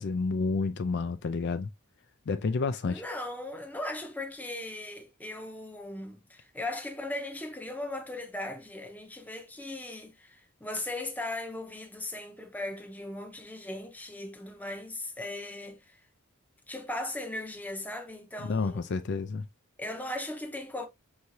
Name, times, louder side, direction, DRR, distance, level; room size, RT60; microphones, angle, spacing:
voice 1, 0.0-1.7 2.3-3.0 18.4-19.5, left 4 dB, 50° left, 0.4 m, -30 dB
voice 2, 2.8-16.0 16.7-18.9 19.8-20.9, left 1 dB, 10° left, 0.7 m, -38 dB
5.6 x 3.2 x 2.6 m
head